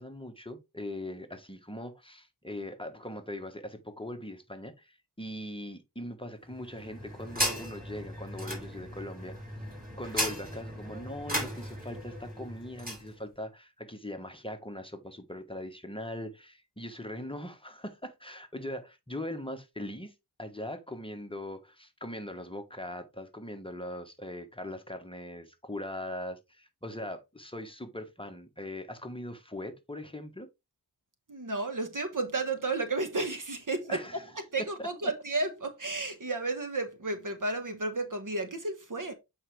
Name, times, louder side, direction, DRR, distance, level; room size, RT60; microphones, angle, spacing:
voice 1, 0.0-9.5 9.9-20.1 20.4-30.5 33.9-34.2, left 1 dB, 10° left, 1.2 m, -41 dB
sound 1, 6.5-13.1, equal, 20° right, 4.5 m, -36 dB
voice 2, 31.3-39.1, right 2 dB, 50° right, 1.3 m, -32 dB
8.4 x 4.7 x 3.2 m
wide cardioid pair, 70°, 42 cm